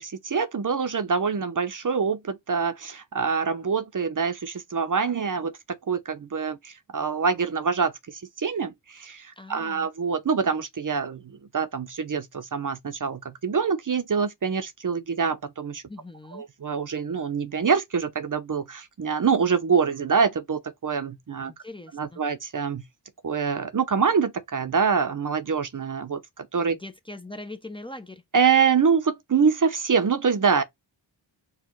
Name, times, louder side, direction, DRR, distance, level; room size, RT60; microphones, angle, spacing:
voice 1, 0.0-5.5 5.9-15.8 16.3-21.5 21.9-22.8 23.2-26.7 28.3-30.6, right 6 dB, 40° right, 0.9 m, -25 dB
voice 2, 9.4-9.9 15.9-16.4 21.6-22.2 26.7-28.2, left 2 dB, 10° left, 0.8 m, -41 dB
4.6 x 2.4 x 4.6 m
cardioid pair, 65°, 48 cm